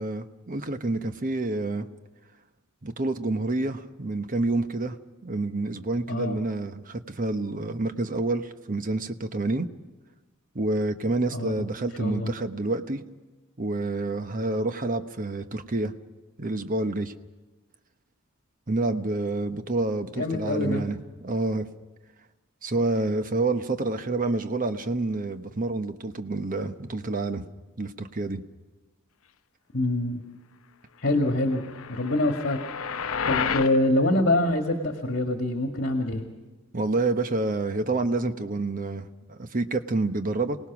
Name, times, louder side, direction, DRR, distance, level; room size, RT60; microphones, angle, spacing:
voice 1, 0.0-1.9 2.8-5.0 5.2-9.7 10.5-13.0 13.6-15.9 16.4-17.1 18.7-21.7 22.6-27.4 27.8-28.4 36.7-40.6, right 2 dB, 40° right, 9 dB, 1.0 m, -28 dB
voice 2, 6.1-6.4 11.3-11.7 12.0-12.3 20.2-20.8 29.7-30.2 31.0-32.6 32.9-36.2, left 1 dB, 55° left, 4 dB, 1.9 m, -25 dB
sound 1, 31.5-33.8, left 6 dB, 70° left, 0.8 m, -30 dB
28.0 x 18.5 x 6.1 m, 1.2 s
head